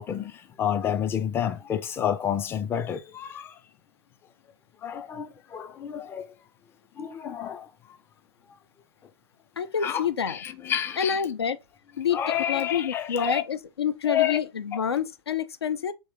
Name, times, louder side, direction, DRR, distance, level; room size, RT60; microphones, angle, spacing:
voice 1, 0.0-3.5 4.8-6.3 7.0-7.7 9.8-11.2 12.1-13.4 14.0-14.4, left 10 dB, 15° left, 0.4 m, -29 dB
voice 2, 9.6-10.4 11.0-11.6 12.0-12.2 12.5-15.9, left 7 dB, 75° left, 0.5 m, -27 dB
3.9 x 2.8 x 3.6 m
figure-of-eight pair, 105°, 13 cm